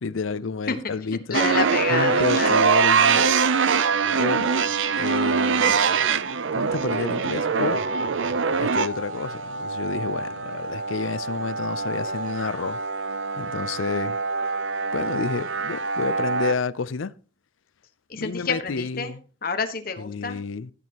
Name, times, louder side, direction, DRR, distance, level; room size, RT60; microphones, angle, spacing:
voice 1, 0.0-1.4 1.9-3.4 4.2-4.5 5.0-5.8 6.5-7.8 8.5-12.8 13.4-14.2 14.9-17.2 18.1-19.2 20.0-20.7, left 4 dB, 80° left, 0.6 m, -30 dB
voice 2, 1.3-2.6 18.1-19.2 19.4-20.4, left 4 dB, 50° left, 1.3 m, -28 dB
sound 1, 1.3-16.5, right 5 dB, 70° right, 0.6 m, -24 dB
14.5 x 8.5 x 3.0 m
head